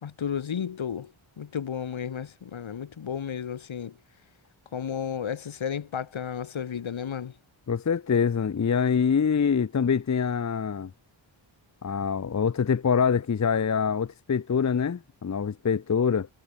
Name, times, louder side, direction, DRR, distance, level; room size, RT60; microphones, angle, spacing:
voice 1, 0.0-3.9 4.7-7.4, left 8 dB, 75° left, 2.5 m, -33 dB
voice 2, 7.7-10.9 11.8-16.3, left 6 dB, 35° left, 0.8 m, -25 dB
wide cardioid pair, 140°, 47 cm